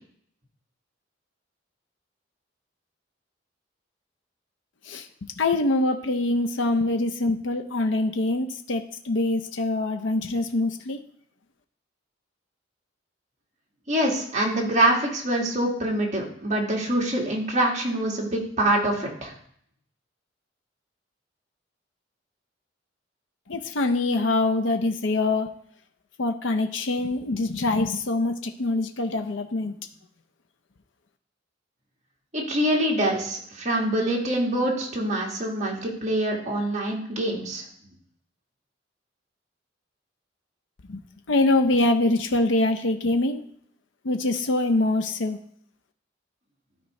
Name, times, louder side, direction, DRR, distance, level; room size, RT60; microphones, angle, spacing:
voice 1, 4.8-11.0 23.5-25.6 26.2-29.8 40.9-41.0 41.3-43.4 44.0-45.4, left 2 dB, 75° left, 6 dB, 0.6 m, -24 dB
voice 2, 13.9-19.3 32.3-37.6, right 1 dB, 40° right, -2 dB, 1.8 m, -25 dB
12.5 x 4.6 x 3.1 m, 0.65 s
head